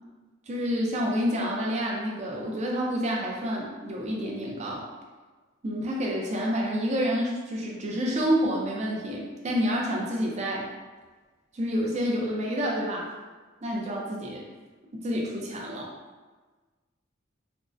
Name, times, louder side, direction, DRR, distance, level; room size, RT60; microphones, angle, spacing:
voice 1, 0.5-4.8 5.6-10.6 11.5-13.1 13.6-14.4 15.0-15.9, equal, 35° right, -2 dB, 0.5 m, -28 dB
3.5 x 2.1 x 2.5 m, 1.3 s
head